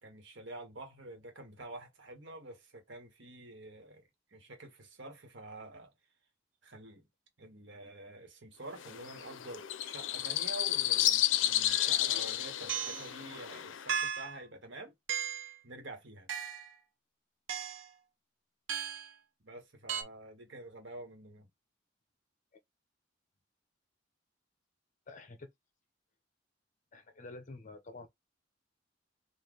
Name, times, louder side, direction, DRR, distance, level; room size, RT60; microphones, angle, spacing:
voice 1, 0.0-5.9 6.6-7.1 7.4-14.9 15.6-16.3 19.4-21.5, right 2 dB, 70° right, 1.5 m, -48 dB
sound 1, 8.8-13.9, left 13 dB, 85° left, 0.5 m, -32 dB
sound 2, 11.7-11.9 12.7-13.1 13.9-14.4 15.1-15.6 16.3-16.8 17.5-17.9 18.7-19.1 19.9-20.0, right 8 dB, 85° right, 0.8 m, -36 dB
voice 2, 25.1-25.5 26.9-28.1, left 2 dB, 40° left, 0.8 m, -48 dB
4.1 x 2.6 x 3.2 m
head